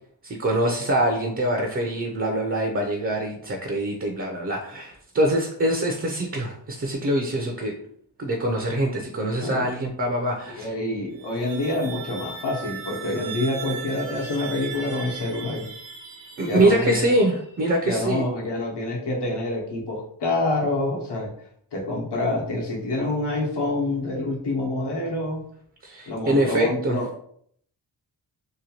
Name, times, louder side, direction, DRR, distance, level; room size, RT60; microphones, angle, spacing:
voice 1, 0.2-7.8 8.2-10.7 16.4-18.2 25.8-27.0, right 1 dB, 30° right, 1 dB, 0.5 m, -24 dB
voice 2, 10.5-15.7 16.4-17.1 17.8-21.3 21.7-25.4 26.1-27.2, left 2 dB, 65° left, -2 dB, 1.0 m, -27 dB
sound 1, 11.1-17.7, right 6 dB, 80° right, 0.7 m, -38 dB
2.9 x 2.2 x 2.8 m, 0.64 s
cardioid pair, 50°, 43 cm